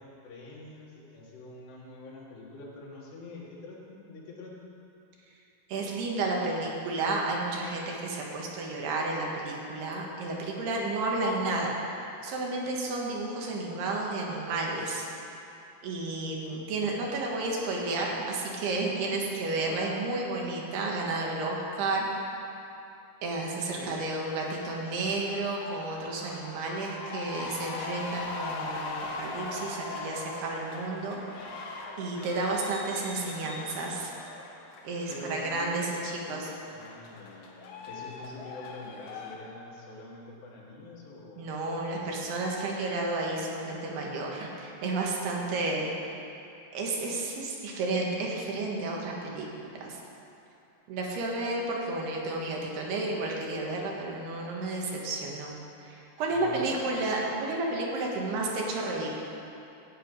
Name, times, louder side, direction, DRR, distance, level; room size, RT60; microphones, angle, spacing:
voice 1, 0.0-4.5 23.8-24.0 35.1-41.5 41.9-42.1 51.1-51.5 56.3-56.7, left 2 dB, 90° left, -4 dB, 4.1 m, -45 dB
voice 2, 5.7-11.8 12.2-15.1 15.8-22.1 23.2-31.6 32.0-34.1 34.9-36.5 41.4-45.9 46.7-50.0 50.9-55.6 55.8-59.1, right 2 dB, 80° right, -1 dB, 3.5 m, -32 dB
sound 1, 23.8-39.4, left 3 dB, 65° left, 2.0 m, -41 dB
14.0 x 9.0 x 5.4 m, 2.8 s
omnidirectional pair, 4.7 m